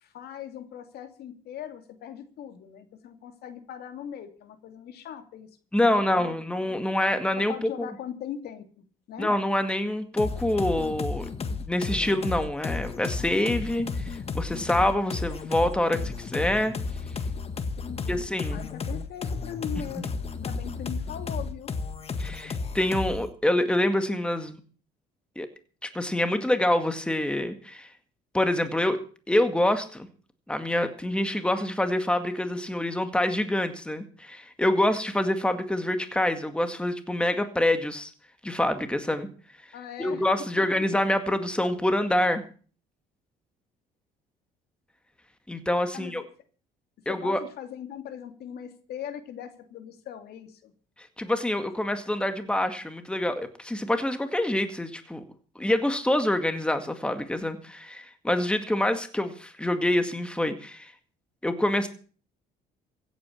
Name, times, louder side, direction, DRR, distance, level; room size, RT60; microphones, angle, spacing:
voice 1, 0.0-5.5 6.1-6.4 7.4-9.3 17.8-18.2 18.5-21.7 39.7-40.3 40.6-40.7 45.9-46.3 47.1-50.7, left 9 dB, 70° left, 8 dB, 2.6 m, -40 dB
voice 2, 5.7-7.9 9.2-11.3 11.7-16.8 18.1-18.6 22.2-24.6 25.4-25.5 25.8-27.9 28.3-29.0 29.3-30.1 30.5-38.1 38.4-39.3 40.0-42.4 45.5-46.2 47.1-47.4 51.2-55.2 55.6-60.9 61.4-61.9, left 1 dB, 5° left, 8 dB, 2.0 m, -26 dB
sound 1, 10.2-23.3, left 4 dB, 35° left, 1.7 m, -33 dB
16.0 x 9.1 x 7.2 m, 0.41 s
cardioid pair, 110°, 17 cm